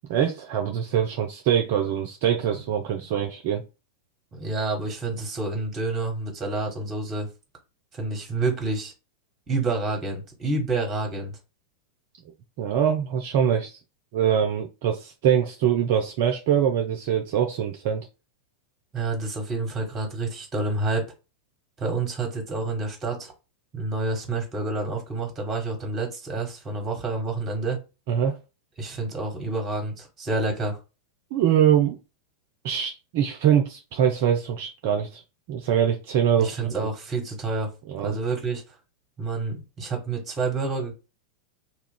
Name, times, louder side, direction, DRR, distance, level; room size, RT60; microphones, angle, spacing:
voice 1, 0.1-3.6 12.6-13.8 14.1-18.1 28.1-28.4 31.3-32.0 32.6-35.2 35.5-36.7 37.9-38.2, right 9 dB, 50° right, 3 dB, 0.5 m, -23 dB
voice 2, 4.3-7.3 7.9-8.9 9.5-11.3 18.9-21.0 21.8-23.3 23.7-27.8 28.8-30.8 36.4-38.6 39.2-40.9, right 3 dB, 20° right, 3 dB, 1.2 m, -28 dB
2.4 x 2.3 x 3.5 m, 0.29 s
figure-of-eight pair, 90°, 0 cm